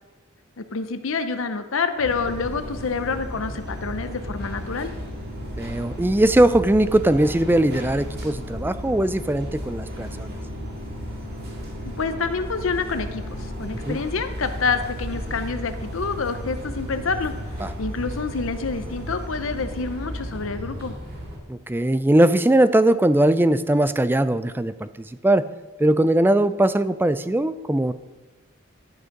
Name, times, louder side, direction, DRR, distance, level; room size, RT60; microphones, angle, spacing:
voice 1, 0.6-4.9 11.8-17.3 17.8-20.9, left 4 dB, 65° left, 9 dB, 0.7 m, -27 dB
sound 1, 2.0-21.4, equal, 50° right, 2.3 m, -34 dB
voice 2, 5.6-10.4 13.9-14.0 17.6-17.7 21.5-25.4 25.8-27.9, right 1 dB, 10° right, 12 dB, 0.3 m, -20 dB
12.5 x 6.3 x 5.3 m, 1.2 s
head